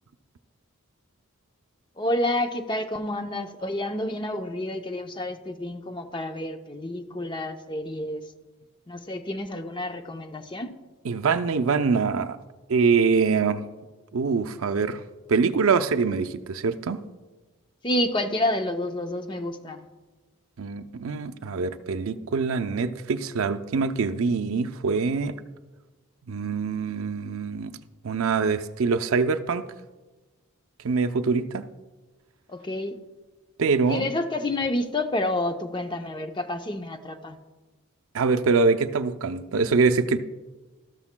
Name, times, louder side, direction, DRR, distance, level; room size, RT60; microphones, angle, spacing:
voice 1, 2.0-8.2 8.9-10.7 17.8-19.9 32.5-33.0 33.9-37.4, left 1 dB, 20° left, 7 dB, 0.6 m, -29 dB
voice 2, 11.0-12.4 12.7-13.6 14.1-15.0 15.3-17.0 20.6-25.3 26.3-27.8 28.0-29.6 30.8-31.6 33.6-34.1 38.1-40.2, right 4 dB, 75° right, 9 dB, 0.5 m, -24 dB
13.0 x 13.0 x 2.2 m, 1.2 s
head